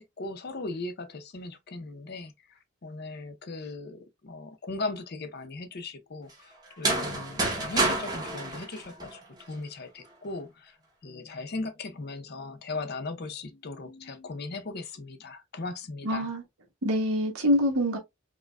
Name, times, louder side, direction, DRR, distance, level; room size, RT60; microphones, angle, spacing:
voice 1, 0.0-10.8 11.0-16.3, left 3 dB, 45° left, 0.6 m, -38 dB
sound 1, 6.7-9.5, right 2 dB, 20° right, 0.8 m, -29 dB
voice 2, 16.0-16.4 16.8-18.0, equal, 80° right, 1.1 m, -25 dB
4.7 x 2.2 x 2.2 m
head